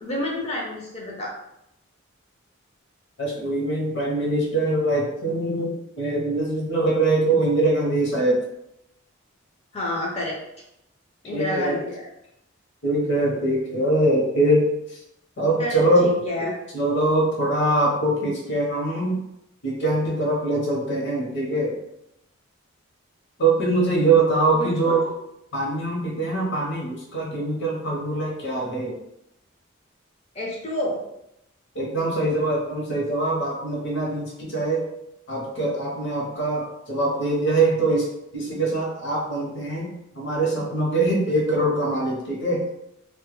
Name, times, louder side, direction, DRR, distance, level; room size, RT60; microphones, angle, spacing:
voice 1, 0.0-1.4 9.7-10.4 11.2-12.1 15.6-16.6 24.5-25.0 30.3-31.0, left 1 dB, 30° left, -3 dB, 0.5 m, -29 dB
voice 2, 3.2-8.4 11.3-11.8 12.8-14.7 15.4-16.1 16.7-19.2 19.6-21.7 23.4-25.0 25.5-28.9 31.7-34.8 35.3-38.1 38.3-42.6, right 2 dB, 60° left, -3 dB, 0.8 m, -23 dB
2.2 x 2.1 x 3.0 m, 0.82 s
head